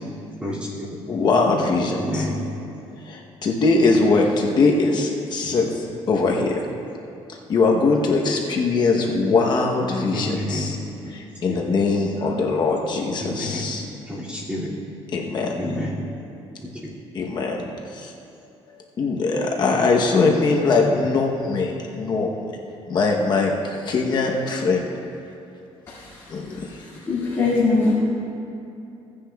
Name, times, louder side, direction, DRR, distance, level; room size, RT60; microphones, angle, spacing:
voice 1, 0.4-0.9 2.0-2.3 10.1-10.6 11.5-11.6 13.2-13.6 14.1-14.7 15.6-15.9, left 1 dB, 10° right, -7 dB, 2.3 m, -29 dB
voice 2, 1.1-2.3 3.1-6.6 7.5-10.8 11.1-13.8 15.1-15.6 17.1-17.6 17.9-18.1 19.0-22.4 22.9-23.5 23.8-24.9 26.3-26.7, left 3 dB, 45° left, 0 dB, 0.9 m, -21 dB
voice 3, 25.9-27.9, left 3 dB, 25° left, -10 dB, 2.0 m, -23 dB
16.5 x 9.8 x 2.3 m, 2.7 s
cardioid pair, 150°, 11 cm